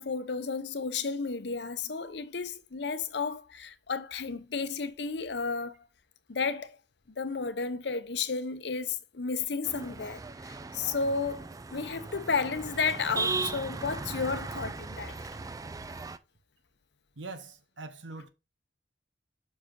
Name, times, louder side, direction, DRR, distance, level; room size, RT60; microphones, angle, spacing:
voice 1, 0.0-5.7 6.3-6.8 7.2-15.2, left 5 dB, 65° left, 0.7 m, -32 dB
sound 1, 9.7-16.2, right 3 dB, 20° right, 0.3 m, -37 dB
voice 2, 17.2-18.3, right 3 dB, 85° right, 1.0 m, -42 dB
5.7 x 4.9 x 3.8 m
head